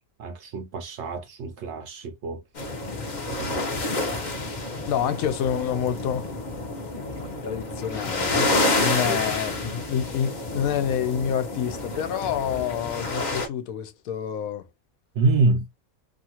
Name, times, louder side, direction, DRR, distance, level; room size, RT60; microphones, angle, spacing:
voice 1, 0.2-2.4 3.3-3.7 9.0-9.2 15.1-15.7, right 3 dB, 65° right, 0.7 m, -26 dB
sound 1, 2.6-13.5, left 2 dB, 40° left, 0.8 m, -29 dB
voice 2, 4.9-6.3 7.4-8.5 8.8-14.7, left 9 dB, 75° left, 1.0 m, -28 dB
2.8 x 2.4 x 2.8 m
omnidirectional pair, 1.5 m